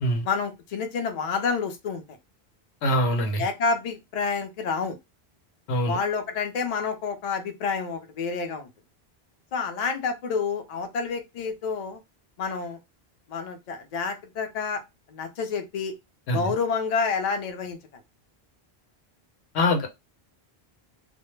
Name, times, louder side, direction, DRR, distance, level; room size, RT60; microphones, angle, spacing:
voice 1, 0.2-2.0 3.4-5.0 5.9-8.7 9.5-12.0 12.4-12.8 13.3-14.8 15.1-15.9 16.3-17.8, left 5 dB, 50° left, 0.6 m, -28 dB
voice 2, 2.8-3.5 5.7-6.0 16.3-16.5 19.5-19.9, left 1 dB, 90° left, 0.9 m, -24 dB
2.1 x 2.1 x 3.1 m
omnidirectional pair, 1.1 m